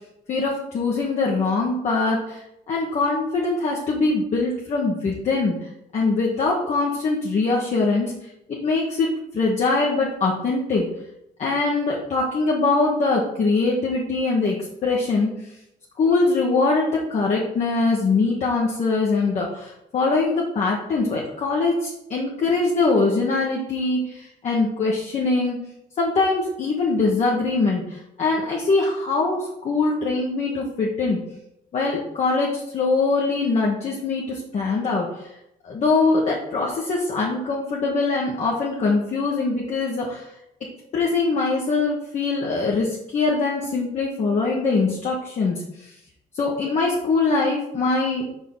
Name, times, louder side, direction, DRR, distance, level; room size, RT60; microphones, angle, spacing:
voice 1, 0.3-9.1 9.3-10.9 11.4-15.3 16.0-25.6 26.0-31.2 31.7-35.3 35.6-40.3 40.9-45.9 46.3-48.2, left 3 dB, 45° left, -3 dB, 1.2 m, -22 dB
4.6 x 4.6 x 5.5 m, 0.83 s
cardioid pair, 110°, 17 cm